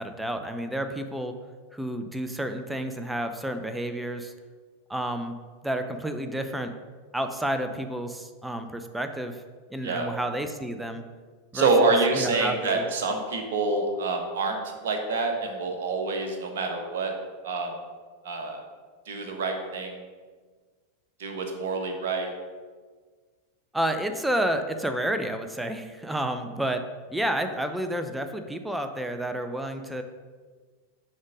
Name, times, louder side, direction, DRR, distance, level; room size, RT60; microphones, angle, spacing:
voice 1, 0.0-1.3 1.7-4.3 4.9-5.4 5.6-6.7 7.1-9.4 9.7-11.0 11.5-12.8 23.7-26.8 27.1-30.0, right 1 dB, 5° right, 7 dB, 0.6 m, -30 dB
voice 2, 11.5-17.1 17.4-17.7 18.2-18.6 19.1-20.0 21.2-22.3, right 3 dB, 55° right, 3 dB, 1.1 m, -27 dB
6.3 x 3.7 x 6.1 m, 1.5 s
figure-of-eight pair, 90°, 0 cm